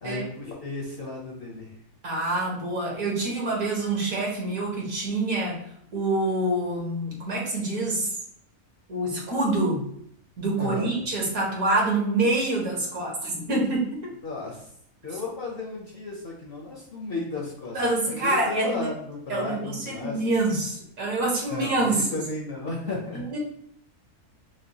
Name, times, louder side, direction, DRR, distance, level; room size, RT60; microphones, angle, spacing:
voice 1, 0.0-1.7 10.6-11.0 14.2-14.7 15.0-20.5 21.5-23.2, left 3 dB, 50° left, -2 dB, 0.8 m, -34 dB
voice 2, 2.0-5.6 5.9-8.2 8.9-9.8 10.4-14.1 17.7-18.9 19.3-22.2 23.1-23.4, right 2 dB, 65° right, -3 dB, 1.8 m, -26 dB
6.2 x 2.4 x 2.8 m, 0.68 s
omnidirectional pair, 1.6 m